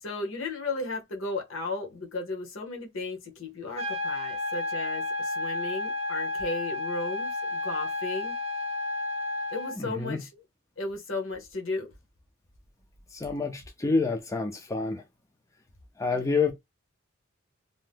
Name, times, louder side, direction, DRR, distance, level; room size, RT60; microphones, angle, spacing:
voice 1, 0.0-8.3 9.5-10.3 10.8-11.9 16.1-16.3, left 3 dB, 70° left, 0.9 m, -35 dB
sound 1, 3.8-9.8, left 2 dB, 30° right, 0.7 m, -32 dB
voice 2, 9.8-10.2 13.1-15.0 16.0-16.5, left 4 dB, 15° left, 0.3 m, -28 dB
2.7 x 2.0 x 3.4 m
head